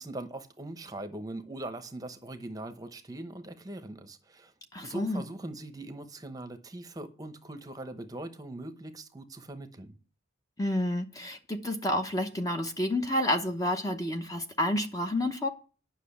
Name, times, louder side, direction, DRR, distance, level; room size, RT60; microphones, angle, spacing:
voice 1, 0.0-4.5 4.8-10.0, right 1 dB, 20° right, 0.9 m, -41 dB
voice 2, 4.7-5.2 10.6-15.5, left 1 dB, 15° left, 0.8 m, -29 dB
9.9 x 6.1 x 8.5 m
head